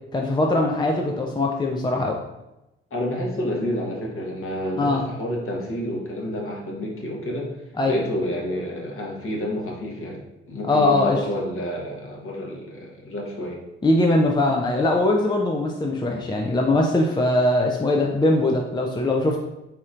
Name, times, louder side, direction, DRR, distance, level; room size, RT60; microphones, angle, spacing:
voice 1, 0.1-2.2 4.8-5.0 7.8-8.0 10.6-11.2 13.8-19.4, left 2 dB, 15° left, 1 dB, 0.6 m, -21 dB
voice 2, 2.9-7.5 7.8-10.2 10.5-13.6, left 1 dB, 45° left, -2 dB, 1.3 m, -29 dB
4.2 x 4.2 x 2.5 m, 0.96 s
hypercardioid pair, 50°, 30 cm